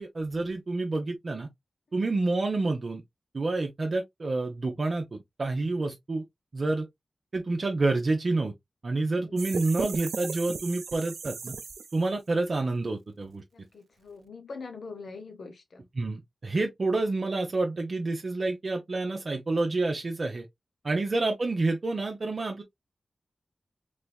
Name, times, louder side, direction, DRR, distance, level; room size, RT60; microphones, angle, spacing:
voice 1, 0.0-1.5 1.9-3.0 3.3-6.2 6.5-6.9 7.3-8.5 8.8-11.5 11.9-13.4 16.0-20.5 20.8-22.6, right 2 dB, 50° right, 0.7 m, -28 dB
sound 1, 9.4-12.2, right 5 dB, 90° right, 0.4 m, -37 dB
voice 2, 13.5-15.9, left 4 dB, 75° left, 0.7 m, -44 dB
3.3 x 3.3 x 2.2 m
wide cardioid pair, 70°, 0 cm